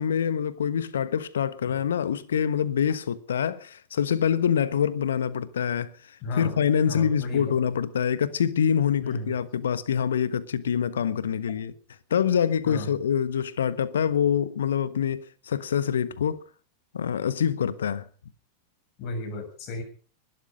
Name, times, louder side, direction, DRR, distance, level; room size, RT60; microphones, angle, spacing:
voice 1, 0.0-5.9 6.4-11.7 12.1-16.4 16.9-18.0, left 8 dB, 65° left, 1.3 m, -25 dB
voice 2, 6.2-6.6 6.9-7.5 9.0-9.3 12.7-12.9 19.0-19.8, left 2 dB, 40° left, 7.0 m, -33 dB
20.5 x 12.5 x 5.4 m
figure-of-eight pair, 90°, 0 cm